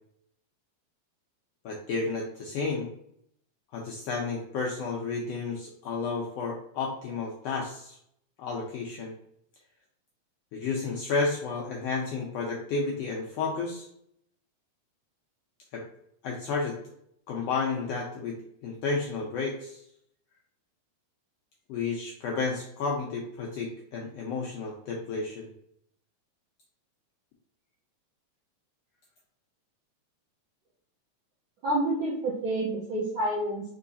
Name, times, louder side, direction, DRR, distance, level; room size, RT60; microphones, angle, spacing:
voice 1, 1.6-2.9 3.7-8.0 8.4-9.1 10.5-13.9 15.7-15.8 16.2-16.8 17.3-18.3 18.6-19.8 21.7-25.5, left 4 dB, 80° left, -1 dB, 1.4 m, -31 dB
voice 2, 31.6-33.6, right 1 dB, 75° right, -6 dB, 1.2 m, -28 dB
4.6 x 3.1 x 2.6 m, 0.72 s
omnidirectional pair, 3.4 m